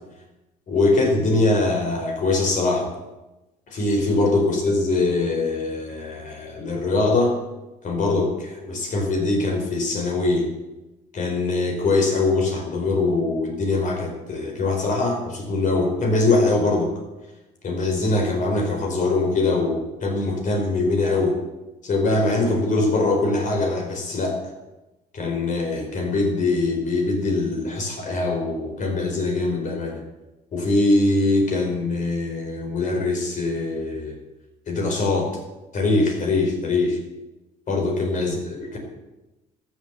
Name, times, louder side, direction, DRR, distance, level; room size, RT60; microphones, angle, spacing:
voice 1, 0.7-2.9 3.7-7.3 7.8-10.5 11.1-16.9 17.6-21.4 21.8-24.4 25.1-30.0 30.5-34.2 34.7-35.3 35.7-37.0 37.7-38.8, left 2 dB, 50° left, 2 dB, 4.7 m, -22 dB
14.0 x 8.2 x 8.2 m, 1.0 s
cardioid pair, 110°, 17 cm